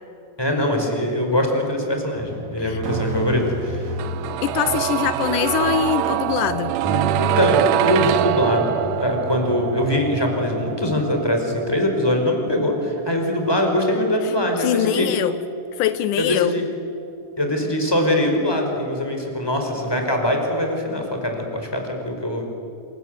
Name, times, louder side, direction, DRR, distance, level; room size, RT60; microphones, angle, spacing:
voice 1, 0.4-3.9 7.2-15.1 16.2-16.6 17.4-22.4, left 1 dB, 5° left, 2 dB, 4.8 m, -22 dB
sound 1, 2.2-10.8, right 2 dB, 60° right, 3.8 m, -31 dB
sound 2, 4.0-15.8 16.1-16.2, right 13 dB, 85° right, 2.4 m, -25 dB
voice 2, 4.4-6.7 14.6-15.3 15.8-16.6, left 11 dB, 80° left, 13 dB, 2.3 m, -22 dB
28.0 x 26.5 x 8.0 m, 2.6 s
omnidirectional pair, 3.6 m